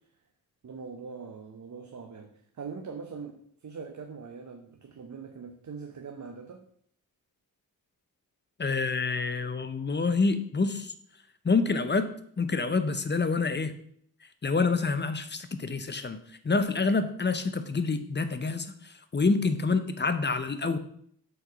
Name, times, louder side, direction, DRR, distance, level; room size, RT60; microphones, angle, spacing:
voice 1, 0.6-3.4 3.6-6.6, right 5 dB, 50° right, 4 dB, 0.9 m, -42 dB
voice 2, 8.6-10.9 11.4-13.7 14.4-16.2 16.4-20.8, left 4 dB, 30° left, 10 dB, 0.7 m, -27 dB
6.4 x 4.6 x 5.2 m, 0.64 s
cardioid pair, 70°, 37 cm